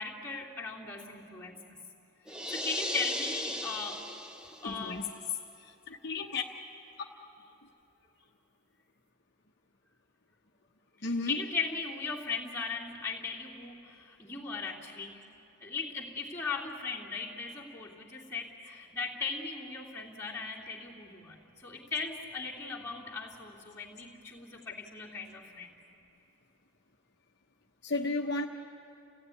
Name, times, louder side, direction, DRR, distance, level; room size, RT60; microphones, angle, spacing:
voice 1, 0.0-1.6 2.5-4.0 4.4-5.1 11.0-15.3 15.6-25.8, left 4 dB, 15° left, -5 dB, 2.8 m, -38 dB
sound 1, 2.3-4.8, equal, 5° right, 0.7 m, -36 dB
voice 2, 4.6-5.0 5.9-6.4 11.0-11.4 27.8-28.5, left 3 dB, 50° left, 1 dB, 1.0 m, -33 dB
30.0 x 16.5 x 9.8 m, 2.9 s
head